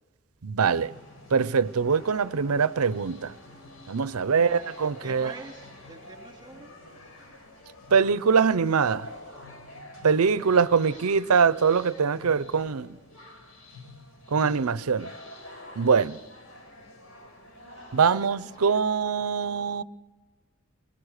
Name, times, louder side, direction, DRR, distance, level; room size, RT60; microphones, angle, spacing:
voice 1, 0.4-0.9 1.3-3.3 3.9-5.3 7.9-9.1 10.0-13.0 14.3-15.1 15.8-16.2 17.9-19.8, right 5 dB, 90° right, 0.6 m, -23 dB
sound 1, 0.6-18.8, left 1 dB, 70° left, 6.5 m, -47 dB
voice 2, 4.3-4.6 5.0-6.7 10.3-10.5 10.9-11.0 18.1-18.5, right 3 dB, 20° right, 2.7 m, -45 dB
24.5 x 22.5 x 6.5 m
head